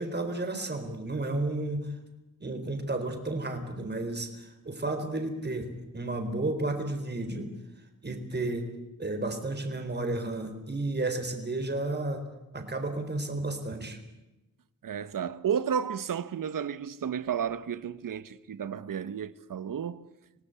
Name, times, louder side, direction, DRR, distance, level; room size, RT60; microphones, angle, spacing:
voice 1, 0.0-1.9 2.4-7.5 8.0-8.7 9.0-12.2 12.5-14.0, right 2 dB, 30° right, 4.1 m, -32 dB
voice 2, 14.8-20.1, right 8 dB, 75° right, 1.2 m, -32 dB
26.5 x 18.5 x 8.3 m
wide cardioid pair, 105°, 33 cm